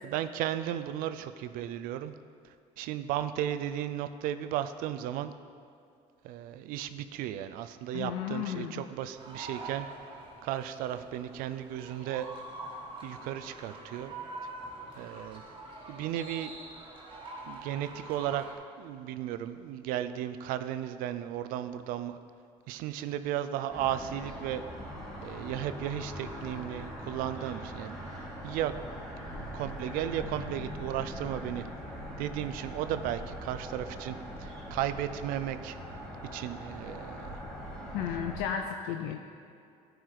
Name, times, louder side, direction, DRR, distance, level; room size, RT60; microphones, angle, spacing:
voice 1, 0.0-2.1 2.8-5.3 6.2-9.9 10.4-12.3 13.0-14.1 15.0-15.4 15.9-16.5 17.5-18.4 18.8-22.2 22.7-24.6 25.2-28.0 28.4-28.7 29.4-31.7 32.2-35.8 36.3-37.4, right 11 dB, 80° right, 11 dB, 0.5 m, -35 dB
voice 2, 7.9-8.9 37.9-39.2, left 9 dB, 90° left, 4 dB, 0.5 m, -34 dB
sound 1, 9.2-18.5, right 2 dB, 35° right, 1.4 m, -45 dB
sound 2, 23.7-38.4, equal, 5° left, 2.1 m, -41 dB
12.0 x 4.7 x 4.9 m, 2.4 s
cardioid pair, 105°, 14 cm